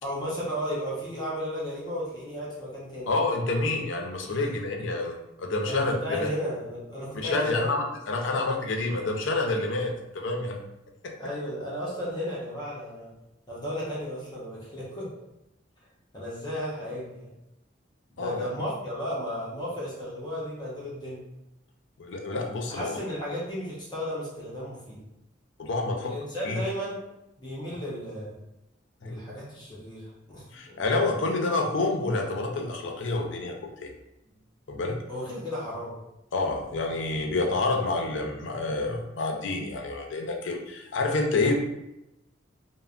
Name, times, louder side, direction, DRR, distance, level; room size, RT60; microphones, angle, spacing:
voice 1, 0.0-3.1 4.3-4.4 5.7-7.8 8.3-8.4 11.2-13.1 13.5-15.1 16.1-17.3 18.1-21.2 22.7-25.0 26.0-27.0 27.4-28.4 29.0-30.1 30.3-30.8 35.1-35.9, equal, 25° left, -7 dB, 0.7 m, -34 dB
voice 2, 3.1-6.3 7.1-10.6 11.0-11.1 18.2-18.5 22.0-23.0 25.6-26.2 26.4-26.6 29.0-29.2 30.5-33.5 33.8-33.9 34.7-35.0 36.3-41.6, left 2 dB, 80° left, 2 dB, 0.5 m, -28 dB
3.2 x 2.0 x 2.4 m, 0.90 s
head